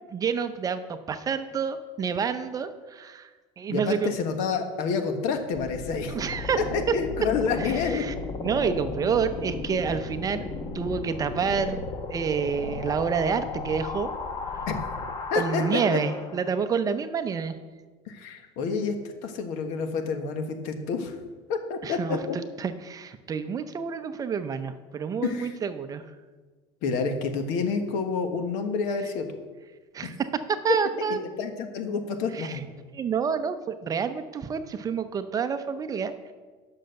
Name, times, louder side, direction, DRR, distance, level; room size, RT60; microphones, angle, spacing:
voice 1, 0.1-3.3 3.6-4.2 6.1-6.6 7.6-8.1 8.4-10.5 10.7-11.8 12.1-14.1 14.5-14.7 15.3-17.5 21.8-26.0 29.9-31.2 32.3-32.6 32.9-36.3, right 6 dB, 25° right, 10 dB, 0.6 m, -28 dB
voice 2, 3.7-6.1 6.6-8.0 14.7-14.8 15.3-15.8 18.1-18.9 19.2-21.1 21.5-22.4 25.2-25.5 26.8-29.3 31.1-32.6, left 5 dB, 65° left, 6 dB, 1.4 m, -28 dB
sound 1, 5.5-16.5, left 3 dB, 35° left, 1.1 m, -35 dB
10.0 x 6.5 x 6.6 m, 1.4 s
cardioid pair, 130°, 13 cm